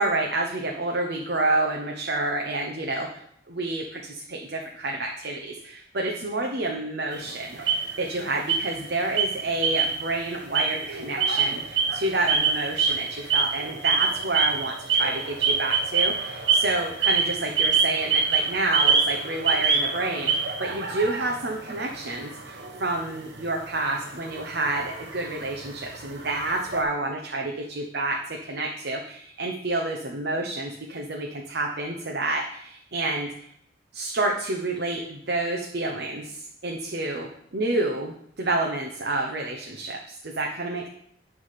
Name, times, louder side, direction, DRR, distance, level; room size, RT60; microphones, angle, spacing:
voice 1, 0.0-3.2 3.5-33.3 33.9-40.9, right 2 dB, 65° right, 1 dB, 0.8 m, -29 dB
sound 1, 7.1-8.2 8.5-8.9 9.2-10.1 10.4-26.8, right 5 dB, 80° right, 1.2 m, -26 dB
9.7 x 3.5 x 5.7 m, 0.70 s
head